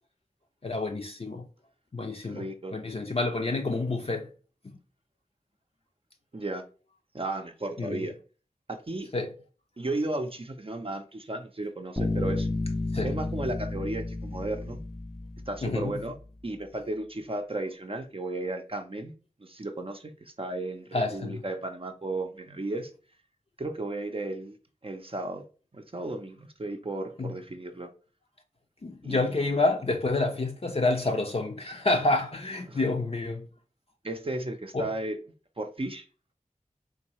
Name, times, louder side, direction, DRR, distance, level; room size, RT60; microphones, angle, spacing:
voice 1, 0.6-1.5 1.9-4.3 4.6-4.8 7.8-8.1 9.1-9.3 12.9-13.2 15.6-15.9 20.9-21.4 27.2-27.4 28.8-33.5 34.7-34.9, left 2 dB, 45° left, 0.5 m, -28 dB
voice 2, 2.3-2.8 6.3-6.6 7.1-8.2 8.7-9.1 9.8-12.5 13.0-14.8 15.5-16.1 16.4-19.1 19.4-22.9 23.6-24.6 24.8-25.4 25.7-27.9 29.0-29.2 32.7-32.8 34.0-35.2 35.6-36.1, right 2 dB, 40° right, 0.5 m, -34 dB
Bass guitar, 12.0-15.7, left 2 dB, ahead, 0.7 m, -31 dB
3.8 x 2.7 x 3.0 m
wide cardioid pair, 45°, 14 cm